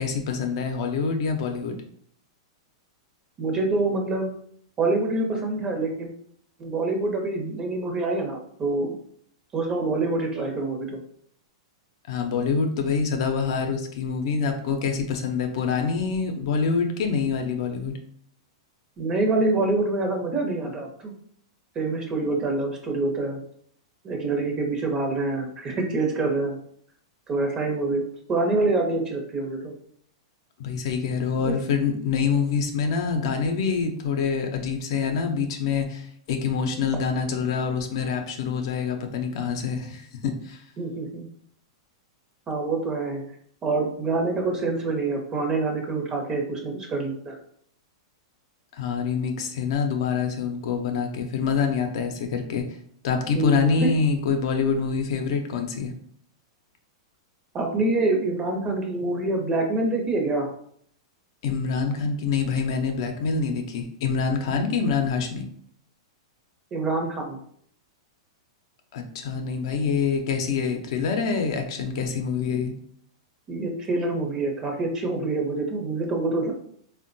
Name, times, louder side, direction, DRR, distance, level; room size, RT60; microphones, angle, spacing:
voice 1, 0.0-1.8 12.1-18.0 30.6-40.6 48.7-52.6 53.0-55.9 61.4-65.5 68.9-72.7, left 5 dB, 60° left, 4 dB, 0.5 m, -26 dB
voice 2, 3.4-4.3 4.8-6.1 6.6-8.9 9.5-11.0 19.0-21.1 21.7-23.4 24.0-26.6 27.3-28.0 28.3-29.7 31.4-31.5 40.8-41.3 42.5-43.2 43.6-47.4 53.4-53.9 57.5-60.5 66.7-67.4 73.5-76.5, right 3 dB, 25° right, 2 dB, 0.7 m, -26 dB
3.5 x 2.1 x 2.6 m, 0.63 s
hypercardioid pair, 125°, 3 cm